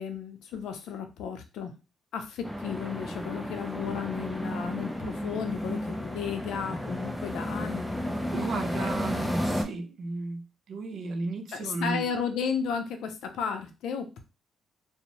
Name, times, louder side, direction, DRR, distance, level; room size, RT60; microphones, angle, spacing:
voice 1, 0.0-1.7 2.1-8.0 8.6-8.9 11.5-14.2, left 7 dB, 80° left, 7 dB, 0.5 m, -34 dB
sound 1, 2.4-9.6, equal, 5° left, 0.5 m, -33 dB
voice 2, 8.2-12.2, right 3 dB, 65° right, 4 dB, 0.6 m, -34 dB
2.6 x 2.0 x 2.9 m, 0.29 s
cardioid pair, 90°, 0 cm